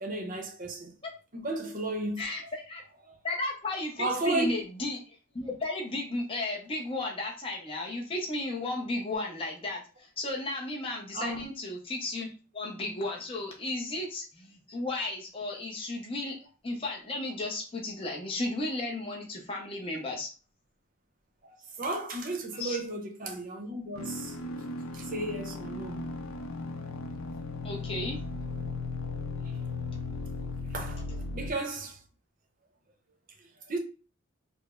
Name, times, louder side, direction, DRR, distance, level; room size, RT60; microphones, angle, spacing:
voice 1, 0.0-1.0 1.3-2.2 3.0-3.2 4.0-4.5 11.1-11.4 21.4-24.4 24.9-26.1 30.7-32.0 33.7-33.8, right 2 dB, 40° right, 0.7 m, -34 dB
voice 2, 2.2-2.8 3.2-5.0 5.3-16.4 16.6-20.3 22.5-22.8 27.6-28.2, left 2 dB, 25° left, 0.6 m, -34 dB
sound 1, 24.0-31.5, left 3 dB, 80° left, 0.5 m, -36 dB
4.7 x 2.0 x 2.3 m
head